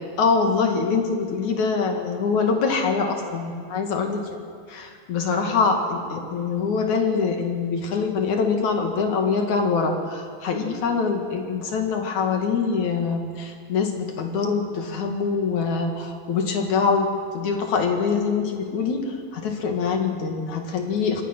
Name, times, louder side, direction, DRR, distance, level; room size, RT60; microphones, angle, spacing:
voice 1, 0.2-4.4 4.7-17.1 17.3-21.2, left 5 dB, 55° left, 3 dB, 3.3 m, -24 dB
25.5 x 20.0 x 6.2 m, 2.1 s
omnidirectional pair, 4.2 m